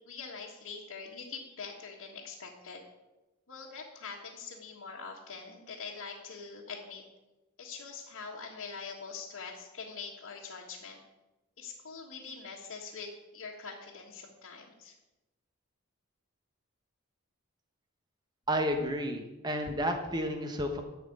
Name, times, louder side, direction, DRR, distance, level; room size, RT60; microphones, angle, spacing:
voice 1, 0.0-2.8 3.5-7.0 7.6-11.0 11.6-14.9, left 5 dB, 90° left, -4 dB, 1.6 m, -44 dB
voice 2, 18.5-20.8, equal, 20° right, 4 dB, 1.1 m, -31 dB
11.5 x 5.9 x 8.6 m, 1.1 s
head